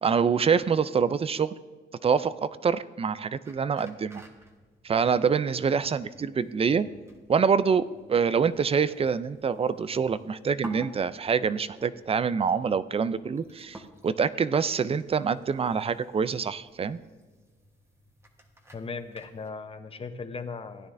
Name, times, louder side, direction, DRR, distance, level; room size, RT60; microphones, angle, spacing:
voice 1, 0.0-1.5 2.0-4.2 4.8-6.9 7.3-17.0, right 6 dB, 30° right, 16 dB, 0.4 m, -26 dB
Opening bottle pouring a drink, 3.4-19.5, right 1 dB, 15° right, 1.2 m, -52 dB
voice 2, 18.7-20.9, left 4 dB, 30° left, 9 dB, 0.8 m, -37 dB
15.5 x 9.6 x 2.6 m, 1.4 s
cardioid pair, 90°, 20 cm